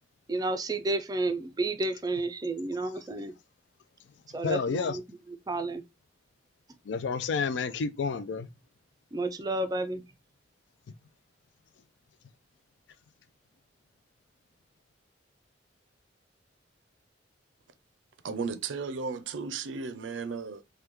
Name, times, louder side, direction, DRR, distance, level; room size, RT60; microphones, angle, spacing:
voice 1, 0.3-3.3 4.3-5.8 9.1-10.0, right 2 dB, 20° right, 0.3 m, -31 dB
voice 2, 4.4-5.0 6.9-8.5, left 5 dB, 70° left, 0.4 m, -30 dB
voice 3, 18.2-20.6, right 5 dB, 85° right, 0.4 m, -34 dB
3.4 x 2.2 x 3.0 m
head